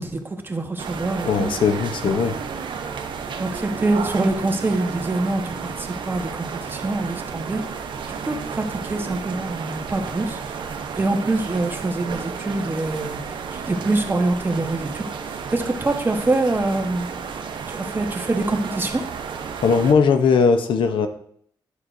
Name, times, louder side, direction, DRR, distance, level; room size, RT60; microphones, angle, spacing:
voice 1, 0.0-1.5 3.4-7.6 8.1-17.1 17.7-19.0, right 2 dB, 25° right, 4 dB, 1.0 m, -25 dB
sound 1, 0.8-19.9, right 6 dB, 75° right, 0.7 m, -32 dB
voice 2, 1.3-2.3 19.6-21.1, left 5 dB, 90° left, 8 dB, 0.7 m, -18 dB
9.8 x 6.2 x 2.5 m, 0.65 s
cardioid pair, 95°, 8 cm